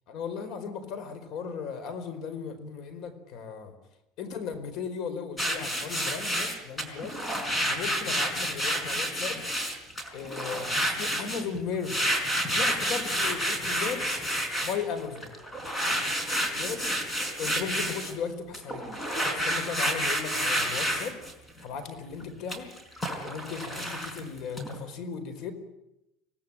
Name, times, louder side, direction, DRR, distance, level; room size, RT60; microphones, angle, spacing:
voice 1, 0.1-3.7 4.2-7.2 7.7-9.4 10.1-12.1 12.5-14.3 14.6-15.3 16.5-16.9 17.4-18.8 19.3-21.2 21.6-22.7 23.2-25.5, left 6 dB, 55° left, 11 dB, 4.7 m, -36 dB
sound 1, 5.4-11.6 11.8-18.1 18.5-21.3 22.2-24.8, equal, 10° left, 4.6 m, -29 dB
26.0 x 18.5 x 9.0 m, 0.87 s
cardioid pair, 145°, 0 cm